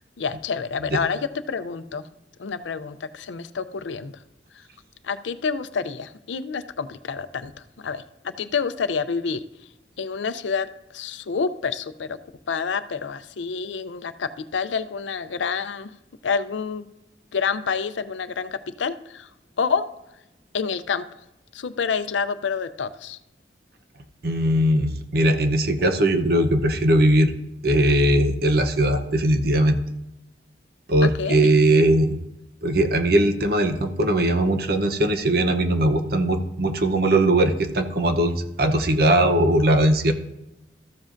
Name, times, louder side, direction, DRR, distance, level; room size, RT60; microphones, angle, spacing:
voice 1, 0.2-1.2 1.5-2.0 2.4-4.1 4.5-4.6 5.0-7.5 7.8-9.4 10.0-12.2 12.5-15.9 16.2-16.9 17.3-19.3 19.6-19.8 20.5-21.1 21.5-23.2 31.2-31.5, left 5 dB, 80° left, 12 dB, 0.5 m, -28 dB
voice 2, 24.2-27.3 27.6-29.8 30.9-32.2 32.6-40.1, right 1 dB, 55° right, 7 dB, 0.7 m, -20 dB
13.5 x 7.3 x 2.6 m, 0.90 s
head